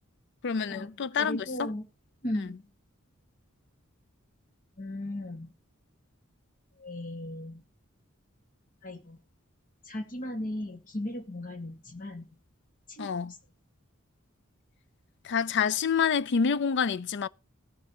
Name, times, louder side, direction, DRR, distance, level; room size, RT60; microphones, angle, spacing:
voice 1, 0.4-1.7 2.4-2.5 13.0-13.3 15.2-17.3, left 6 dB, 60° left, 0.5 m, -27 dB
voice 2, 1.2-1.8 2.2-2.6 4.8-5.5 6.8-7.6 8.8-9.2 9.8-12.3 12.9-13.1, left 1 dB, 40° left, 1.9 m, -36 dB
18.5 x 7.5 x 2.9 m
head